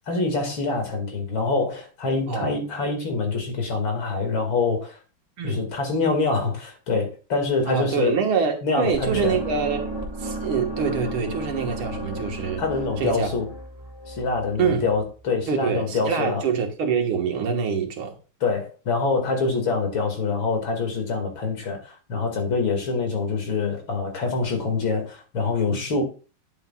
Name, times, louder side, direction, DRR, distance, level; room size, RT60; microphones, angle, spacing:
voice 1, 0.1-5.0 5.4-8.2 8.6-9.4 12.6-13.5 14.1-16.4 18.4-26.0, left 4 dB, 70° left, 2.8 m, -25 dB
voice 2, 2.3-2.6 5.4-5.7 7.7-9.9 10.2-12.6 13.0-13.3 14.6-14.9 15.5-18.2 25.7-25.9, right 6 dB, 85° right, 2.3 m, -25 dB
sound 1, 8.9-15.0, right 2 dB, 15° right, 1.1 m, -34 dB
10.5 x 8.0 x 2.3 m
omnidirectional pair, 2.3 m